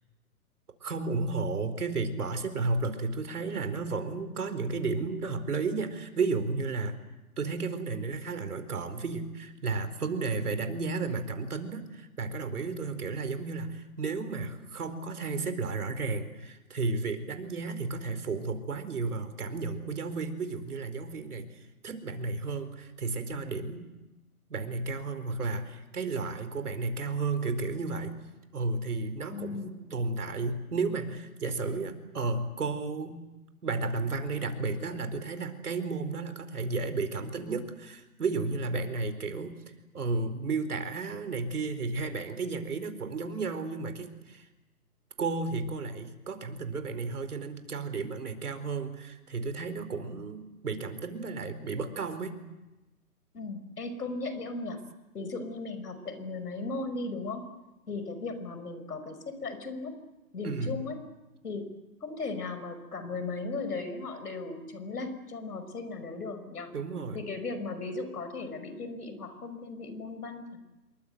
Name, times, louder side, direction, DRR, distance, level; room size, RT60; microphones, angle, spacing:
voice 1, 0.8-6.9 7.4-23.9 24.5-28.1 28.5-33.2 33.6-44.5 45.2-52.4 60.4-60.8 66.7-67.2, right 3 dB, 70° right, 9 dB, 4.4 m, -33 dB
voice 2, 29.3-29.9 53.3-54.8 55.1-57.4 57.9-60.0 60.3-61.0 61.4-61.7 62.0-66.7 67.1-70.6, left 3 dB, 80° left, 10 dB, 5.4 m, -37 dB
27.5 x 23.5 x 8.0 m, 1.0 s
hypercardioid pair, 160°, 46 cm